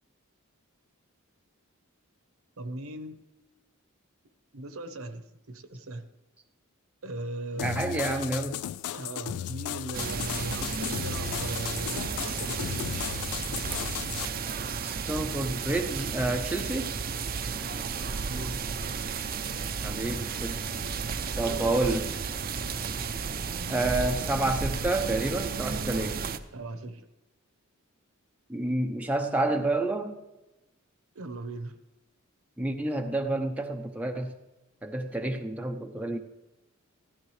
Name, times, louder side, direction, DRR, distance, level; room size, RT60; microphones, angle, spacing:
voice 1, 2.6-3.2 4.5-6.1 7.0-8.3 8.9-13.1 18.2-18.8 21.3-21.9 26.5-27.1 31.1-31.8, right 2 dB, 70° right, 9 dB, 1.0 m, -38 dB
sound 1, 7.6-14.3, left 11 dB, 85° left, 0.3 m, -35 dB
voice 2, 7.6-8.6 14.8-16.9 19.8-20.6 21.4-22.1 23.7-26.2 28.5-30.2 32.6-34.3 34.8-36.2, right 2 dB, 5° right, 3 dB, 0.7 m, -29 dB
sound 2, 9.9-26.4, right 5 dB, 45° right, 0.6 m, -33 dB
16.0 x 13.5 x 3.3 m, 1.0 s
head